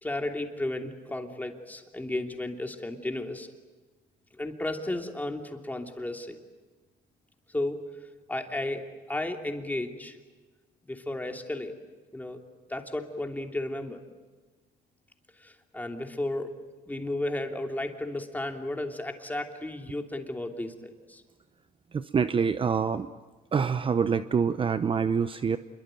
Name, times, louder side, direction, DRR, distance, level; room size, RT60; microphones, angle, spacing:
voice 1, 0.0-3.5 4.4-6.4 7.5-7.8 8.3-10.2 10.9-11.7 12.1-12.4 12.7-14.0 15.4-16.5 16.9-21.2, left 1 dB, 10° left, 4 dB, 3.0 m, -33 dB
voice 2, 21.9-23.1 23.5-25.6, right 6 dB, 30° right, 12 dB, 0.8 m, -26 dB
28.0 x 23.0 x 9.2 m, 1.3 s
cardioid pair, 110°, 17 cm